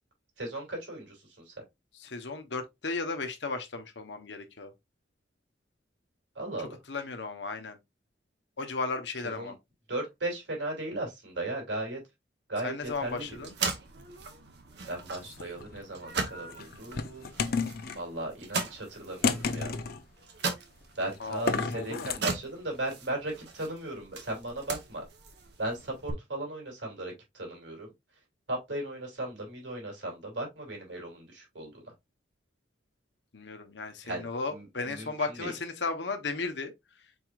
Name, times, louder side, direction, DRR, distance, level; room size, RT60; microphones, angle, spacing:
voice 1, 0.4-1.1 1.5-1.6 6.3-6.7 9.4-9.5 9.9-12.0 12.5-13.3 14.9-17.2 18.0-19.8 20.9-25.0 25.6-27.9 28.5-31.9 34.0-35.1 35.4-35.5, right 1 dB, 80° right, 2.9 m, -36 dB
voice 2, 1.9-4.7 6.6-7.8 8.6-9.6 12.6-13.6 21.2-22.1 33.3-36.7, left 3 dB, 70° left, 1.0 m, -35 dB
sound 1, 12.8-26.1, right 4 dB, 65° right, 1.1 m, -39 dB
sound 2, 15.2-15.8 16.5-18.0 19.2-20.0 21.3-22.2, left 5 dB, 55° left, 0.6 m, -31 dB
4.7 x 4.6 x 2.4 m
head